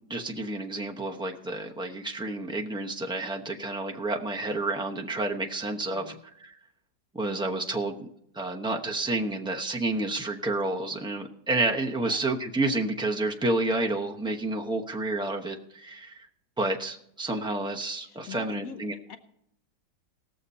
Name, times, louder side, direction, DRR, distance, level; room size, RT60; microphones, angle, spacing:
voice 1, 0.1-6.6 7.1-8.1 8.3-16.3 16.6-18.9, right 2 dB, 5° right, 1 dB, 0.4 m, -30 dB
voice 2, 5.9-6.2 12.0-12.2 18.0-18.8 19.1-19.2, left 7 dB, 60° left, 7 dB, 1.1 m, -42 dB
19.0 x 6.9 x 4.2 m, 0.73 s
omnidirectional pair, 1.9 m